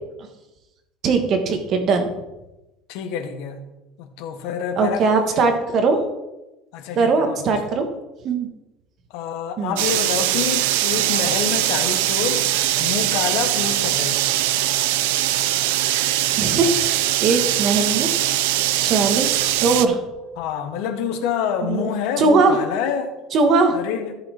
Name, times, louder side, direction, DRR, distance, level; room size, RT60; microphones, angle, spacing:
voice 1, 1.0-2.1 4.8-6.0 7.0-7.9 8.2-8.5 9.6-9.8 16.4-18.1 18.8-20.0 21.7-21.8 22.2-22.6 23.3-23.8, right 4 dB, 35° right, 6 dB, 1.4 m, -20 dB
voice 2, 2.9-3.6 4.0-5.6 6.7-7.8 9.1-14.3 20.4-23.1 23.7-24.1, left 7 dB, 65° left, 7 dB, 1.4 m, -27 dB
sound 1, 9.8-19.9, right 14 dB, 90° right, 0.6 m, -21 dB
14.0 x 5.6 x 4.3 m, 1.0 s
cardioid pair, 165°, 0 cm